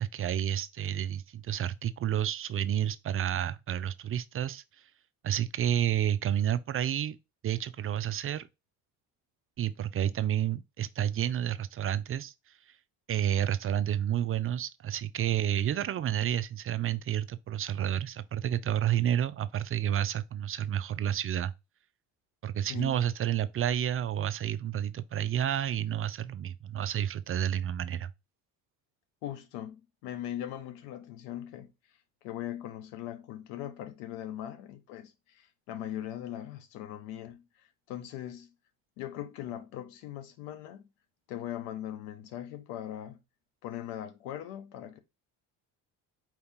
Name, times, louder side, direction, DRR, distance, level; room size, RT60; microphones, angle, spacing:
voice 1, 0.0-4.9 5.2-7.2 7.4-8.5 9.6-12.8 13.1-21.5 22.4-28.1, right 10 dB, 35° right, 0.4 m, -30 dB
voice 2, 29.2-31.7 32.2-38.5 39.0-40.9 41.3-43.2 43.6-45.0, left 11 dB, 90° left, 0.9 m, -40 dB
4.7 x 2.8 x 3.5 m
supercardioid pair, 95°, 40 cm